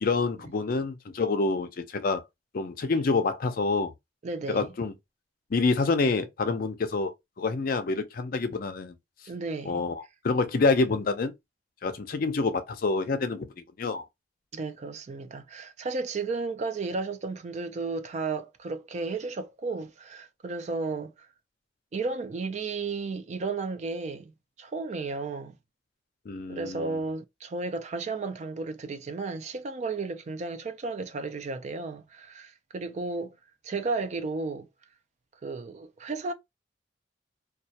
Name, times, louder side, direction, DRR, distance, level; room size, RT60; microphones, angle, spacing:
voice 1, 0.0-2.2 2.5-3.9 4.5-4.9 5.5-7.1 7.4-9.0 9.7-11.3 11.8-14.0 26.3-27.0, left 3 dB, 50° left, 0.4 m, -27 dB
voice 2, 4.2-4.7 9.3-9.8 14.5-21.3 21.9-24.3 24.6-25.6 26.5-33.4 33.6-34.7 35.4-36.3, right 3 dB, 40° right, 0.3 m, -33 dB
2.2 x 2.1 x 2.7 m
head